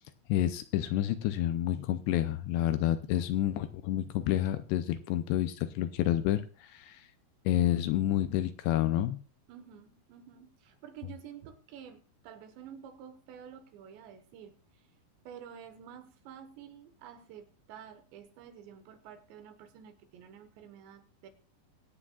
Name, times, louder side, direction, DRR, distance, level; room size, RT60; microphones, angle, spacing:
voice 1, 0.3-7.1 7.5-9.2, left 12 dB, 80° left, 10 dB, 2.5 m, -29 dB
voice 2, 3.0-3.4 9.5-14.9 15.2-21.3, right 8 dB, 80° right, 8 dB, 3.4 m, -50 dB
23.5 x 8.7 x 2.4 m, 0.37 s
omnidirectional pair, 5.1 m